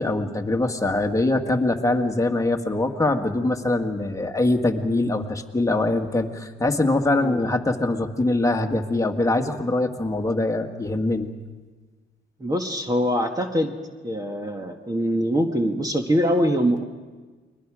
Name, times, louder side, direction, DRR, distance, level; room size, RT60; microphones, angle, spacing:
voice 1, 0.0-11.3, left 2 dB, 15° left, 4 dB, 1.8 m, -23 dB
voice 2, 12.4-13.8 14.0-16.9, equal, 20° right, 4 dB, 1.7 m, -23 dB
29.5 x 22.0 x 5.0 m, 1.4 s
cardioid pair, 90°, 20 cm